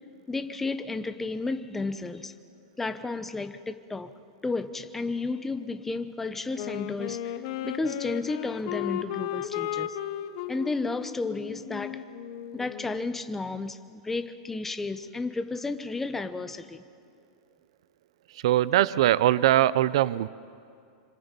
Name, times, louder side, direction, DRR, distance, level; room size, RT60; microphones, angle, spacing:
voice 1, 0.3-2.3 2.8-4.1 4.4-10.0 10.5-12.0 12.5-16.8, left 3 dB, 10° left, 10 dB, 0.8 m, -32 dB
Wind instrument woodwind instrument, 6.5-13.1, left 12 dB, 55° left, 1.0 m, -35 dB
voice 2, 18.3-20.3, right 13 dB, 70° right, 18 dB, 0.5 m, -22 dB
25.5 x 25.5 x 5.3 m, 2.4 s
supercardioid pair, 145°, 3 cm